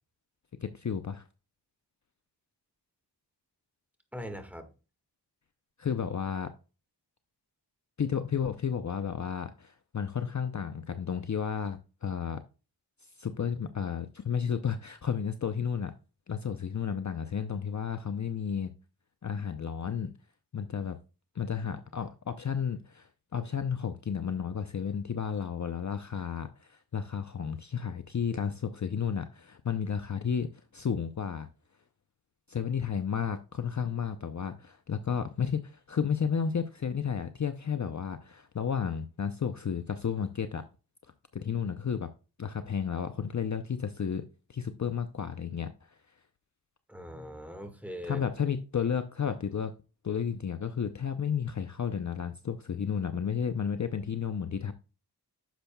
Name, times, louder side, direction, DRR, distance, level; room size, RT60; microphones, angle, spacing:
voice 1, 0.6-1.2 5.8-6.5 8.0-12.4 13.2-15.9 16.3-18.7 19.2-20.1 20.5-21.0 21.3-30.5 30.7-31.5 32.5-40.6 41.3-42.1 42.4-44.2 44.5-46.0 48.0-49.7 50.0-54.7, left 7 dB, 45° left, 0.6 m, -32 dB
voice 2, 4.1-4.7 46.9-48.2, equal, 5° right, 1.6 m, -41 dB
10.5 x 6.7 x 2.3 m
wide cardioid pair, 75°, 41 cm